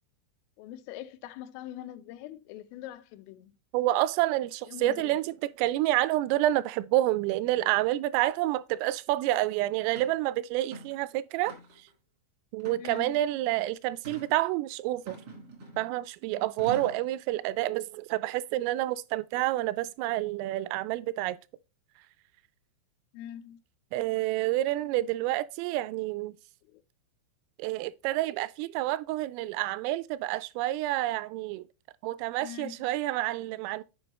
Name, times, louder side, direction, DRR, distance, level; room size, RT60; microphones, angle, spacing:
voice 1, 0.6-3.5 4.7-5.2 12.8-13.2 23.1-23.6 26.6-26.8 32.4-32.9, left 12 dB, 90° left, 3.2 m, -43 dB
voice 2, 3.7-11.6 12.5-15.2 15.8-21.4 23.9-26.4 27.6-31.7 32.0-33.8, right 15 dB, 85° right, 3.1 m, -28 dB
sound 1, 9.3-9.4 9.9-10.2 10.6-11.0 11.4-11.9 12.6-13.2 14.0-14.3 15.0-15.9 16.6-17.1, right 3 dB, 70° right, 0.9 m, -44 dB
9.1 x 5.2 x 3.1 m
omnidirectional pair, 5.8 m